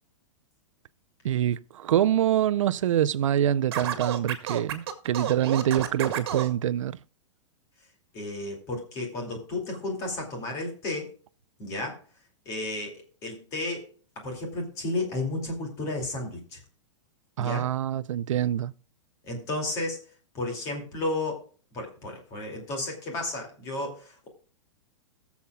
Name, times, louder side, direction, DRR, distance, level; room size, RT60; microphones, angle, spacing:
voice 1, 1.2-7.0 17.4-18.7, right 11 dB, 85° right, 0.6 m, -25 dB
Scratching (performance technique), 3.7-6.5, right 9 dB, 50° right, 1.8 m, -31 dB
voice 2, 8.1-11.1 11.6-12.0 12.5-13.9 14.2-16.6 17.4-17.7 19.2-20.0 20.3-21.4 21.7-24.3, left 2 dB, 20° left, 2.5 m, -33 dB
20.5 x 7.2 x 2.3 m
supercardioid pair, 175°, 16 cm